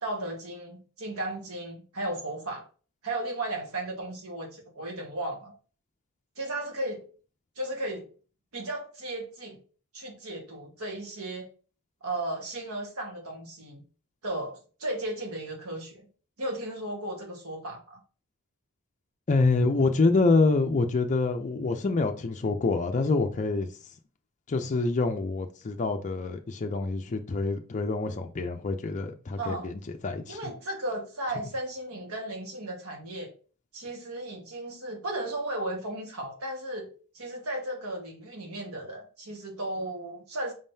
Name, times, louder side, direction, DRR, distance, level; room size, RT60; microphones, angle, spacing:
voice 1, 0.0-2.6 3.0-5.5 6.4-7.0 7.6-8.1 8.5-9.6 9.9-11.5 12.0-13.8 14.2-16.1 16.4-18.0 29.4-29.7 30.3-33.3 33.7-36.9 37.1-40.5, right 1 dB, 70° right, 1.4 m, -35 dB
voice 2, 19.3-23.7 24.5-30.4, left 3 dB, 35° left, 0.4 m, -26 dB
5.3 x 3.6 x 2.7 m
head